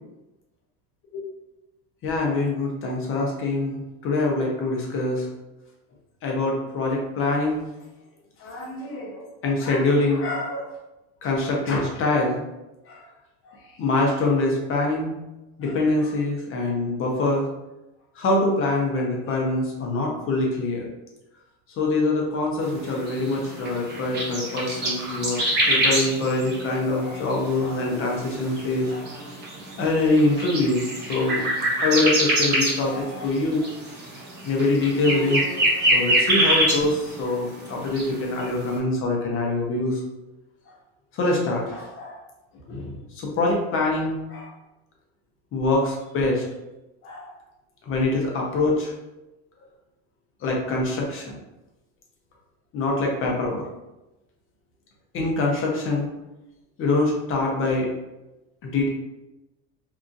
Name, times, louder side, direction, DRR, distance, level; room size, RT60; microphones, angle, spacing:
voice 1, 2.0-5.3 6.2-7.6 8.4-10.7 11.2-12.4 12.9-13.0 13.8-15.2 15.6-17.5 18.2-20.9 21.8-29.1 29.8-31.4 31.8-33.7 34.4-35.4 35.9-40.0 41.1-42.2 42.7-44.5 45.5-46.4 47.0-47.3 47.8-48.9 50.4-51.4 52.7-53.7 55.1-56.1 56.8-57.9 58.6-58.9, left 2 dB, 45° left, -1 dB, 0.8 m, -24 dB
sound 1, 22.7-37.3 37.6-38.5, right 1 dB, 35° right, 0.8 m, -25 dB
2.8 x 2.4 x 2.5 m, 1.0 s
cardioid pair, 125°, 30 cm